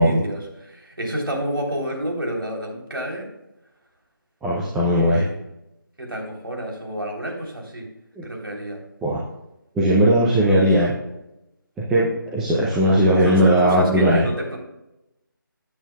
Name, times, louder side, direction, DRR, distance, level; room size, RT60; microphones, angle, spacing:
voice 1, 0.0-3.3 5.0-5.3 6.0-7.9 8.2-8.8 10.4-10.9 13.2-14.6, equal, 85° right, 0 dB, 3.5 m, -29 dB
voice 2, 4.4-5.2 8.2-8.3 9.0-9.2 9.8-10.9 11.9-14.3, equal, 5° right, -6 dB, 0.5 m, -18 dB
14.0 x 8.5 x 2.3 m, 0.92 s
figure-of-eight pair, 160°, 12 cm